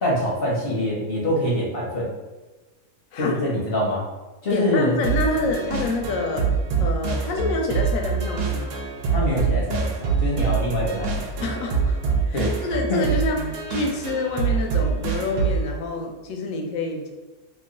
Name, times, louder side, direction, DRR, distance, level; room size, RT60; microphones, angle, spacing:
voice 1, 0.0-2.1 3.2-4.0 4.4-4.9 9.1-11.3 12.3-13.1, left 1 dB, 50° left, -5 dB, 0.8 m, -24 dB
voice 2, 4.5-6.5 6.8-8.8 11.4-17.1, left 2 dB, 70° left, 1 dB, 1.0 m, -27 dB
sound 1, 5.0-15.7, right 5 dB, 90° right, 1.2 m, -25 dB
3.0 x 2.3 x 3.7 m, 1.2 s
omnidirectional pair, 1.6 m